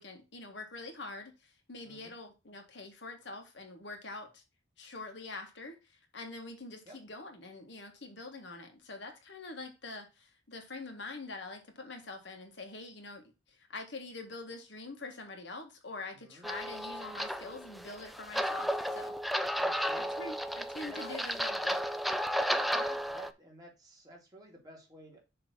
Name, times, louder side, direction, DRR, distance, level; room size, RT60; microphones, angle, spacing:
voice 1, 0.0-4.4 4.8-19.1 20.2-21.8, left 2 dB, 65° left, 1.7 m, -45 dB
voice 2, 16.1-16.4 19.6-20.3 20.9-21.2 22.7-25.2, right 1 dB, 20° right, 2.5 m, -51 dB
sound 1, 16.4-23.3, equal, ahead, 0.3 m, -33 dB
6.8 x 3.4 x 6.0 m
head